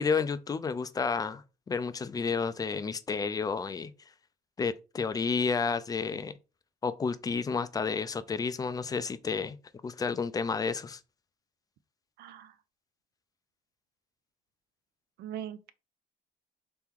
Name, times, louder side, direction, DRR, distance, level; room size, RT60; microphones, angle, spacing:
voice 1, 0.0-3.9 4.6-6.3 6.8-9.6 9.8-11.0, left 5 dB, 20° left, 0.4 m, -31 dB
voice 2, 12.2-12.5 15.2-15.7, right 10 dB, 70° right, 0.5 m, -40 dB
3.4 x 3.0 x 3.6 m
cardioid pair, 110°, 17 cm